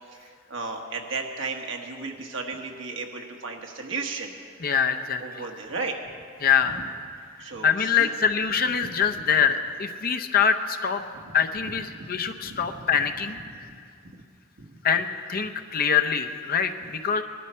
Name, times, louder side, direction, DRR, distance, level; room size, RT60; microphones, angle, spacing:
voice 1, 0.1-4.3 5.2-6.0 6.7-6.8 7.4-8.1 11.9-12.0 12.4-12.8 13.7-13.8 14.0-14.2 14.6-14.8, right 4 dB, 70° right, 2 dB, 1.4 m, -34 dB
voice 2, 4.6-5.5 6.4-6.8 7.4-11.0 11.3-13.8 14.8-17.2, left 7 dB, 50° left, 7 dB, 0.7 m, -24 dB
19.5 x 12.0 x 4.4 m, 2.2 s
head